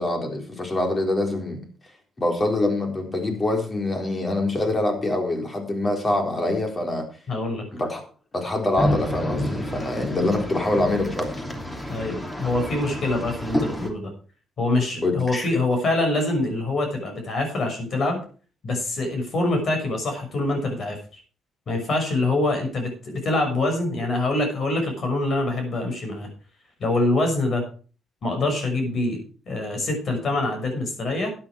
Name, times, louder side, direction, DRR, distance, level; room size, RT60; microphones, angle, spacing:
voice 1, 0.0-1.6 2.2-7.1 7.7-8.0 8.3-11.3 15.0-15.5, left 2 dB, 30° left, 3 dB, 4.0 m, -25 dB
voice 2, 7.3-7.6 11.9-14.1 14.6-18.2 18.6-21.2 21.7-26.3 26.8-27.6 28.2-31.3, left 2 dB, 55° left, 4 dB, 6.1 m, -25 dB
sound 1, 8.8-13.9, left 1 dB, 15° left, 2.9 m, -29 dB
12.0 x 9.6 x 4.7 m, 0.39 s
cardioid pair, 90°, 0 cm